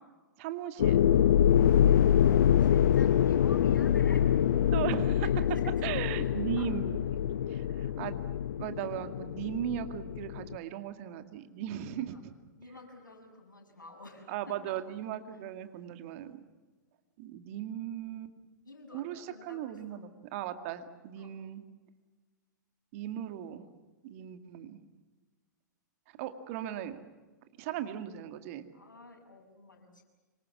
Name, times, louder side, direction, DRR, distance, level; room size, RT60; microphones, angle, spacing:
voice 1, 0.4-1.0 3.1-3.2 4.7-5.3 5.8-7.0 7.5-8.2 8.6-12.3 14.3-16.4 17.2-18.3 18.9-21.6 22.9-23.7 24.0-24.8 26.2-27.0 27.6-28.6, right 10 dB, 45° right, 9 dB, 2.2 m, -37 dB
sound 1, 0.8-10.6, left 10 dB, 60° left, 0.8 m, -25 dB
voice 2, 1.7-2.1 2.6-4.3 5.2-6.7 11.8-12.2 12.6-14.8 18.6-20.0 21.2-21.3 28.7-30.0, left 2 dB, 85° left, 2 dB, 7.1 m, -50 dB
26.5 x 24.5 x 7.4 m, 1.3 s
figure-of-eight pair, 105°, 10 cm